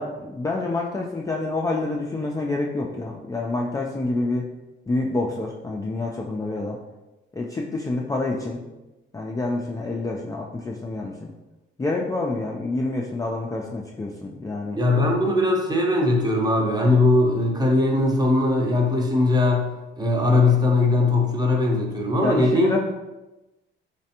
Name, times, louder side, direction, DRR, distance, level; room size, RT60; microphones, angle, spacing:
voice 1, 0.0-4.5 4.9-6.8 7.4-8.6 9.1-11.3 11.8-14.8 22.2-22.8, left 2 dB, 15° left, -2 dB, 0.3 m, -27 dB
voice 2, 14.8-19.7 20.0-22.8, left 2 dB, 20° right, 0 dB, 0.7 m, -20 dB
3.2 x 3.2 x 2.8 m, 1.0 s
cardioid pair, 90°, 20 cm